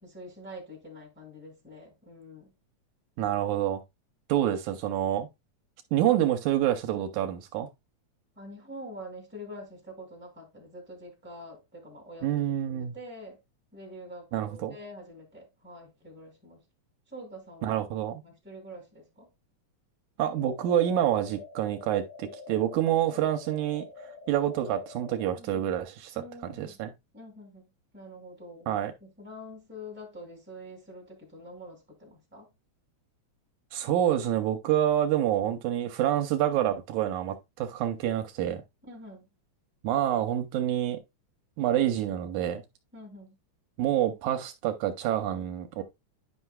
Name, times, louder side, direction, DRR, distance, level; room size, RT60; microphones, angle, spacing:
voice 1, 0.0-2.5 8.4-13.4 13.7-16.6 17.1-17.8 18.2-19.3 23.1-23.2 25.4-25.7 26.1-26.8 27.1-27.7 27.9-28.7 29.0-32.5 38.9-39.3 42.9-43.4, equal, 5° right, 2.1 m, -46 dB
voice 2, 3.2-3.8 4.3-5.3 5.9-7.7 12.2-13.0 14.3-14.7 17.6-18.2 20.2-23.8 24.3-26.9 28.7-28.9 33.7-38.6 39.8-41.0 41.6-42.6 43.8-45.8, right 11 dB, 80° right, 2.0 m, -27 dB
sound 1, 20.2-25.2, left 4 dB, 40° left, 3.6 m, -46 dB
9.9 x 5.5 x 2.2 m
omnidirectional pair, 3.5 m